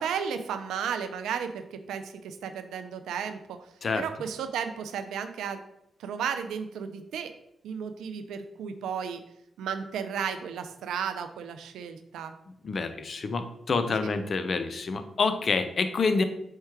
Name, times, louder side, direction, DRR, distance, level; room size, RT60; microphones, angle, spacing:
voice 1, 0.0-3.7 3.9-5.6 6.0-7.3 7.6-9.2 9.6-12.3 14.0-14.1, right 7 dB, 90° right, 8 dB, 0.3 m, -34 dB
voice 2, 12.6-16.2, left 4 dB, 55° left, 9 dB, 0.4 m, -27 dB
4.5 x 2.2 x 4.5 m, 0.79 s
cardioid pair, 60°, 0 cm